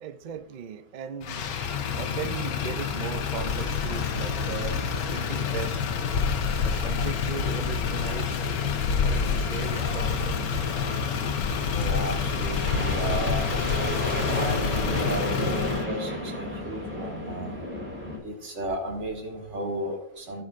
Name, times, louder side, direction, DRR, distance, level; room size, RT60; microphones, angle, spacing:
voice 1, 0.0-1.5 2.0-4.8 5.1-5.8 6.6-8.4 9.0-10.5, right 8 dB, 80° right, 0.4 m, -37 dB
Motor vehicle (road), 1.2-15.8, left 6 dB, 80° left, 1.3 m, -28 dB
voice 2, 3.6-4.0 6.7-6.8 8.2-8.3 11.7-13.5 14.3-17.6 18.2-20.4, right 1 dB, 55° right, 1.8 m, -34 dB
sound 1, 7.8-15.3, left 4 dB, 55° left, 1.2 m, -45 dB
sound 2, 9.6-18.2, equal, 10° right, 2.1 m, -33 dB
16.0 x 5.4 x 2.5 m
omnidirectional pair, 1.5 m